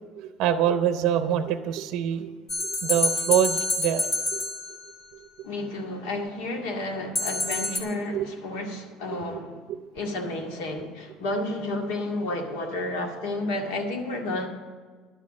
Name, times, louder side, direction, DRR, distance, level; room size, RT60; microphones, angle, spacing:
voice 1, 0.2-2.3 2.6-4.0 4.3-4.5 8.1-8.2 9.1-9.2, right 10 dB, 50° right, 9 dB, 0.7 m, -25 dB
sound 1, 2.5-5.0 7.2-7.8, left 2 dB, 30° left, 1.6 m, -27 dB
voice 2, 5.4-9.6 9.9-14.5, left 2 dB, 90° left, 3 dB, 2.0 m, -31 dB
11.0 x 7.5 x 7.4 m, 1.5 s
cardioid pair, 175°, 0 cm